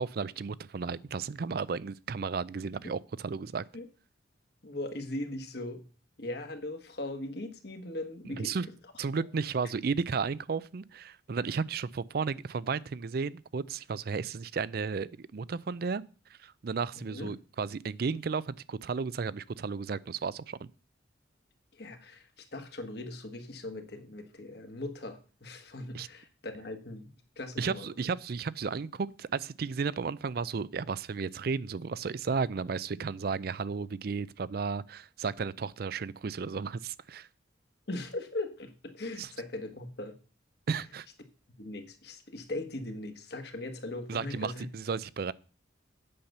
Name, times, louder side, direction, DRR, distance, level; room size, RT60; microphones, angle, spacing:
voice 1, 0.0-3.6 8.3-8.7 9.0-16.0 16.4-20.7 25.9-26.1 27.6-37.3 39.2-39.3 40.7-41.1 44.1-45.3, right 5 dB, 55° right, 0.4 m, -33 dB
voice 2, 4.6-5.8 6.2-8.7 9.1-9.2 16.9-17.3 21.7-28.1 37.9-40.1 41.6-44.6, left 2 dB, 55° left, 1.5 m, -39 dB
8.7 x 5.7 x 6.7 m
head